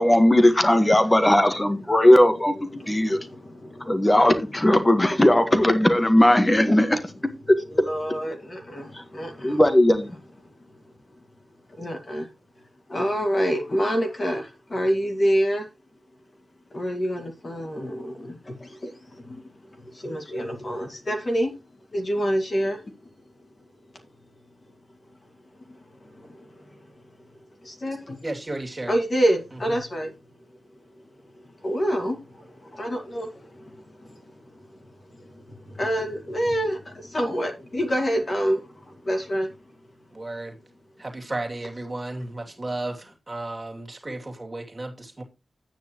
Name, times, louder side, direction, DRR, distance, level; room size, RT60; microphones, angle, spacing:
voice 1, 0.0-3.2 3.9-7.0 7.5-7.6 9.4-10.1, left 1 dB, 15° left, 1.5 m, -18 dB
voice 2, 2.7-4.2 7.7-9.6 10.4-10.9 11.7-12.3 12.9-15.7 16.7-21.6 21.9-23.1 23.9-24.1 25.6-26.9 27.3-28.0 28.9-30.1 30.9-39.6, equal, 30° left, 2.1 m, -28 dB
voice 3, 28.2-28.9 29.7-29.8 40.1-40.6 41.0-45.2, right 2 dB, 20° right, 2.8 m, -33 dB
10.5 x 9.1 x 3.0 m
wide cardioid pair, 170°, 0 cm